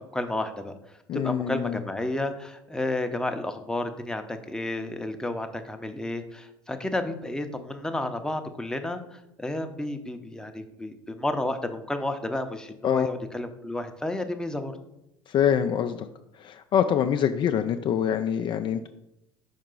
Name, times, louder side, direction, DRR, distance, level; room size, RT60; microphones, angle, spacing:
voice 1, 0.1-0.7 1.1-14.7, left 1 dB, 5° left, 6 dB, 0.7 m, -31 dB
voice 2, 1.1-1.8 12.8-13.1 15.3-16.0 16.4-18.9, left 9 dB, 40° left, 8 dB, 0.3 m, -25 dB
5.5 x 4.6 x 3.8 m, 0.84 s
hypercardioid pair, 70°, 13 cm